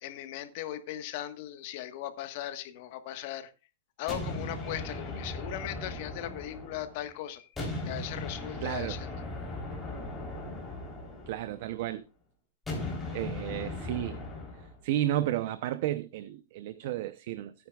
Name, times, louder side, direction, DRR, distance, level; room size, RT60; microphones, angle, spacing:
voice 1, 0.0-3.5 4.0-7.5 7.8-9.2, left 12 dB, 45° left, 1.3 m, -38 dB
sound 1, 4.1-7.1 7.6-11.8 12.7-14.8, left 2 dB, 10° left, 3.6 m, -38 dB
voice 2, 8.6-9.0 11.3-12.0 13.1-14.2 14.6-17.5, right 13 dB, 50° right, 0.7 m, -32 dB
16.5 x 9.5 x 2.4 m
supercardioid pair, 160°, 0 cm